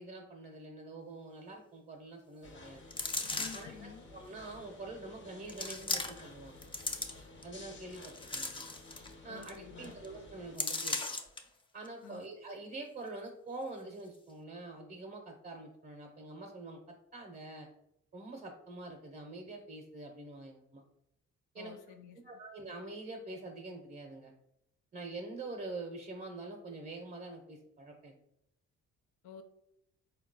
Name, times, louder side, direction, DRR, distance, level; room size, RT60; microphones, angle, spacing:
voice 1, 0.0-2.8 3.5-6.6 7.4-8.6 9.2-11.0 11.7-17.7 18.1-20.8 21.5-21.8 22.1-24.3 24.9-28.2, right 2 dB, 30° right, 2 dB, 0.6 m, -45 dB
sound 1, 2.4-10.6, left 2 dB, 40° left, 0.8 m, -53 dB
sound 2, 2.9-3.8 4.5-4.6 5.5-6.3 6.6-7.4 7.9-9.1 9.4-9.6 9.8-10.1 10.6-11.4 11.9-12.0, left 3 dB, 15° left, 0.4 m, -37 dB
voice 2, 3.4-4.0 9.3-10.0 12.0-12.2 21.6-22.2 29.2-29.4, left 7 dB, 85° left, 6 dB, 0.6 m, -50 dB
4.2 x 2.3 x 3.8 m, 0.81 s
cardioid pair, 90°, 30 cm